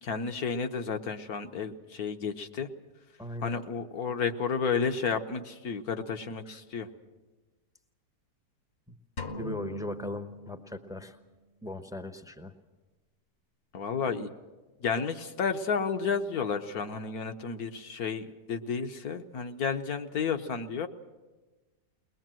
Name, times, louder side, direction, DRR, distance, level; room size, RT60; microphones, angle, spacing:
voice 1, 0.0-2.7 3.4-6.9 13.7-14.3 14.8-20.9, left 5 dB, 65° left, 7 dB, 1.4 m, -32 dB
voice 2, 3.2-3.6 6.5-6.6 8.9-9.0 9.3-11.2 11.6-12.5, left 1 dB, 5° right, 8 dB, 0.6 m, -38 dB
sound 1, 9.2-11.2, left 2 dB, 45° left, 1.1 m, -41 dB
21.5 x 20.5 x 7.6 m, 1.2 s
omnidirectional pair, 1.8 m